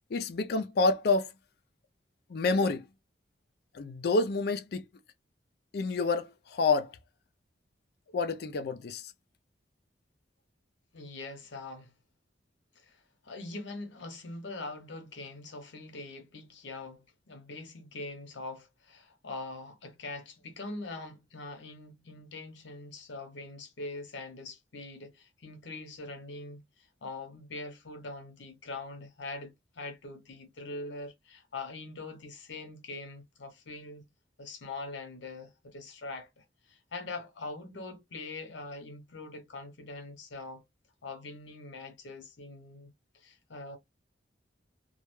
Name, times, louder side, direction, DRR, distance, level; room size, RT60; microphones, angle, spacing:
voice 1, 0.1-1.3 2.3-2.8 3.8-4.8 5.7-6.2 6.6-6.9 8.1-9.0, left 3 dB, 60° left, 0.4 m, -27 dB
voice 2, 10.9-11.9 12.8-34.0 34.4-40.6 41.0-42.9 43.1-43.8, left 2 dB, 85° left, 0.8 m, -43 dB
2.3 x 2.2 x 3.0 m
head